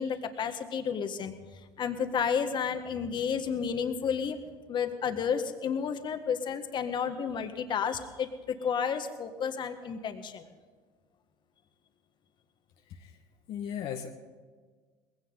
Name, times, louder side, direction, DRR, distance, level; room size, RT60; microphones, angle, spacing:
voice 1, 0.0-4.4 4.7-10.5, left 7 dB, 45° left, 7 dB, 1.7 m, -31 dB
voice 2, 13.5-14.1, left 9 dB, 60° left, 2 dB, 1.4 m, -36 dB
20.0 x 16.5 x 4.0 m, 1.5 s
hypercardioid pair, 75°, 11 cm